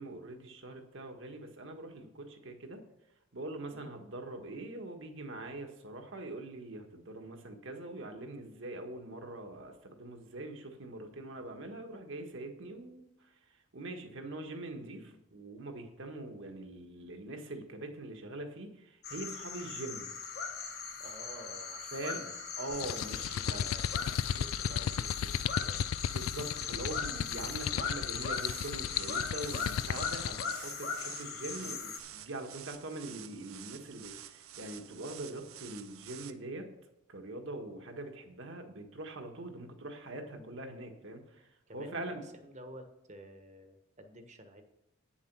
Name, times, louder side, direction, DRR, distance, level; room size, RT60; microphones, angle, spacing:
voice 1, 0.0-2.8 3.3-13.3 13.7-20.1 21.9-22.2 22.6-23.7 26.0-36.7 37.1-41.5 41.7-42.2, right 2 dB, 60° right, 4 dB, 1.6 m, -43 dB
sound 1, 19.0-32.0, left 5 dB, 50° left, 1.4 m, -40 dB
voice 2, 21.0-22.3 23.2-25.8 31.6-31.8 40.4-40.5 41.7-42.2 42.4-44.6, equal, 35° right, 6 dB, 1.2 m, -51 dB
sound 2, 22.7-30.6, left 9 dB, 80° left, 0.3 m, -35 dB
sound 3, 28.2-36.3, right 11 dB, 80° right, 0.7 m, -50 dB
9.4 x 7.3 x 6.1 m, 0.89 s
head